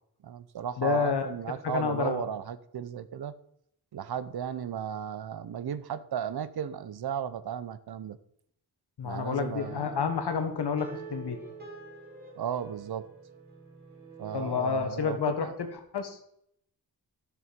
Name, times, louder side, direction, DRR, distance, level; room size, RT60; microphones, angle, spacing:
voice 1, 0.2-3.3 3.9-8.2 9.0-9.8 12.4-13.1 14.2-15.5, right 8 dB, 70° right, 14 dB, 0.7 m, -35 dB
voice 2, 0.8-1.3 1.6-2.3 9.0-11.4 14.3-16.2, left 6 dB, 80° left, 7 dB, 1.6 m, -29 dB
sound 1, 9.5-14.6, right 4 dB, 25° right, 2.2 m, -46 dB
12.5 x 6.8 x 5.2 m, 0.71 s
wide cardioid pair, 180°, 39 cm